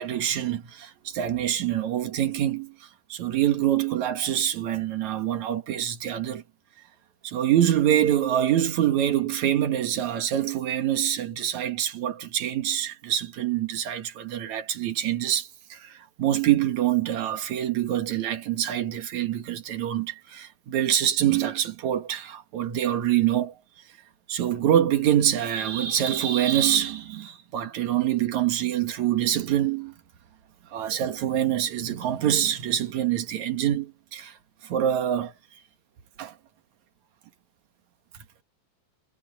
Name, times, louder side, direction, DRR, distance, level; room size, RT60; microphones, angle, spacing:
voice 1, 0.0-6.4 7.2-23.5 24.3-29.9 30.7-34.4 34.6-35.3 36.2-36.3, right 11 dB, 65° right, 2.9 m, -25 dB
omnidirectional pair, 3.6 m